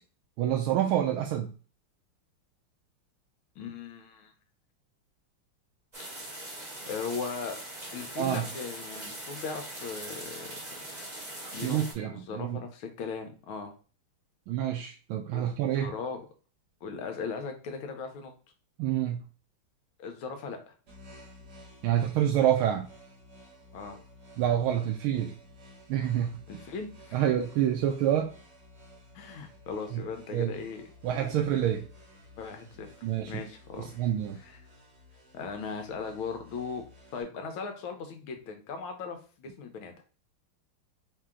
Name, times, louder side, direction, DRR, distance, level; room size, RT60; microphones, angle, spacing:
voice 1, 0.4-1.5 8.2-8.5 11.6-12.6 14.5-15.9 18.8-19.2 21.8-22.9 24.4-25.3 25.9-26.4 27.1-28.3 29.9-30.0 30.3-30.5 31.0-31.8 33.0-33.4 33.8-34.4, right 10 dB, 80° right, 2 dB, 1.4 m, -27 dB
voice 2, 3.6-4.3 6.9-7.6 7.9-10.5 11.5-11.8 12.1-13.7 15.3-15.5 15.7-16.3 16.8-18.3 20.0-20.7 23.7-24.0 26.5-27.2 29.1-30.9 32.4-32.9 33.3-33.9 34.4-34.6 35.3-36.8 37.1-39.9, left 5 dB, 80° left, 5 dB, 1.6 m, -38 dB
sound 1, 5.9-11.9, right 1 dB, 25° right, 1.4 m, -41 dB
sound 2, 20.9-37.2, left 1 dB, 50° right, 2.2 m, -53 dB
4.6 x 2.8 x 3.6 m, 0.37 s
omnidirectional pair, 2.3 m